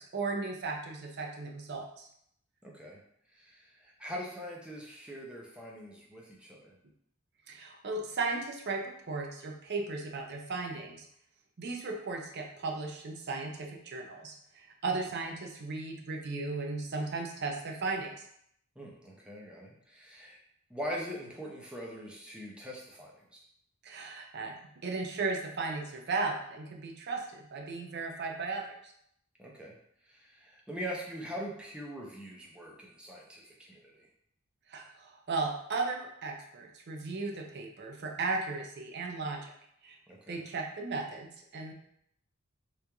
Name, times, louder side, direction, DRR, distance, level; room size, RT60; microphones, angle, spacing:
voice 1, 0.0-2.1 7.5-11.1 11.6-18.1 23.8-28.9 34.7-39.5 39.8-40.0 40.3-41.7, right 3 dB, 50° right, 1 dB, 0.5 m, -36 dB
voice 2, 2.6-3.0 3.3-6.8 18.8-20.4 20.7-23.4 29.4-29.8 30.1-34.1 40.1-40.4, equal, 5° right, -3 dB, 0.6 m, -42 dB
3.1 x 2.6 x 3.3 m, 0.71 s
head